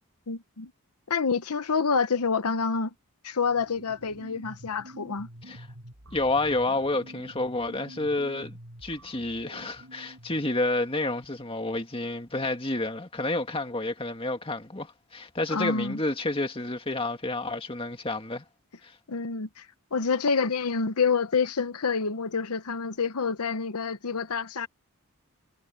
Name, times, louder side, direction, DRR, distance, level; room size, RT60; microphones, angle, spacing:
voice 1, 0.3-0.7 1.1-2.9 3.2-5.3 15.5-16.0 19.1-19.7 19.9-24.7, left 5 dB, 90° left, 0.9 m, -27 dB
sound 1, 3.4-10.5, right 1 dB, 75° right, 5.7 m, -48 dB
voice 2, 6.1-18.4, left 2 dB, 25° left, 2.0 m, -29 dB
head